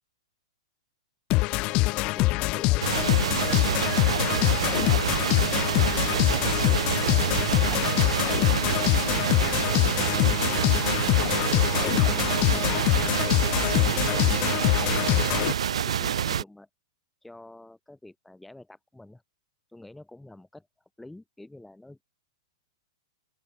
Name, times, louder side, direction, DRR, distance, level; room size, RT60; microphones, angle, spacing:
sound 1, 1.3-15.5, left 23 dB, 25° left, 0.5 m, -24 dB
voice 1, 1.6-4.0 10.3-11.0 11.4-16.7 17.2-19.2 19.7-20.7 21.0-22.0, left 2 dB, 5° left, 5.3 m, -48 dB
sound 2, 2.8-16.4, right 9 dB, 90° right, 1.7 m, -27 dB
open air
hypercardioid pair, 165°, 3 cm